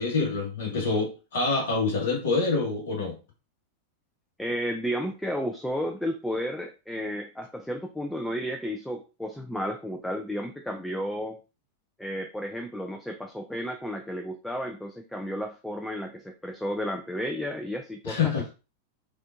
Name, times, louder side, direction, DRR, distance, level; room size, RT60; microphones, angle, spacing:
voice 1, 0.0-3.1 18.0-18.4, left 4 dB, 60° left, 0 dB, 1.3 m, -26 dB
voice 2, 4.4-11.4 12.0-18.3, equal, 5° left, 5 dB, 0.3 m, -32 dB
3.5 x 2.5 x 2.3 m, 0.32 s
figure-of-eight pair, 90°, 0 cm